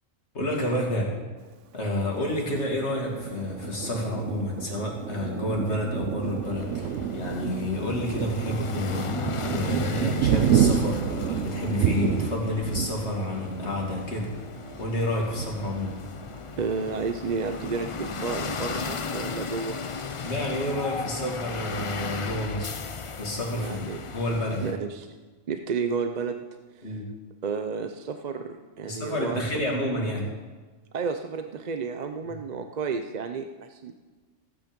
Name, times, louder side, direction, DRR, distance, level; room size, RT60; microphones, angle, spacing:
voice 1, 0.3-1.1 1.7-9.1 9.5-14.3 14.8-16.0 20.2-22.7 23.2-24.8 26.8-27.1 28.8-30.3, left 1 dB, 65° left, -1 dB, 2.6 m, -29 dB
Thunder, 2.5-16.8 17.3-17.5 17.8-18.4, right 8 dB, 85° right, 1.0 m, -29 dB
sound 1, 6.4-24.7, left 5 dB, 40° left, 0.5 m, -36 dB
voice 2, 16.6-19.8 23.5-24.0 24.6-25.1 25.5-26.4 26.7-27.0 27.4-29.4 30.9-33.9, right 5 dB, 45° right, 7 dB, 0.6 m, -31 dB
15.5 x 8.6 x 5.2 m, 1.3 s
omnidirectional pair, 1.2 m